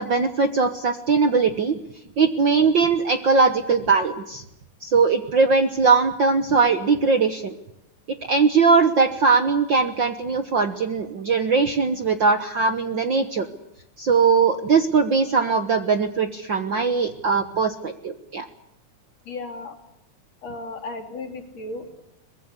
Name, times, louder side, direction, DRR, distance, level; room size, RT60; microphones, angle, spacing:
voice 1, 0.0-1.8 2.2-4.4 4.8-7.5 8.3-13.5 14.0-18.5, right 4 dB, 50° right, 9 dB, 1.5 m, -20 dB
voice 2, 19.3-19.8 20.4-22.0, left 2 dB, 60° left, 4 dB, 4.1 m, -35 dB
23.5 x 21.0 x 8.3 m, 0.85 s
omnidirectional pair, 3.4 m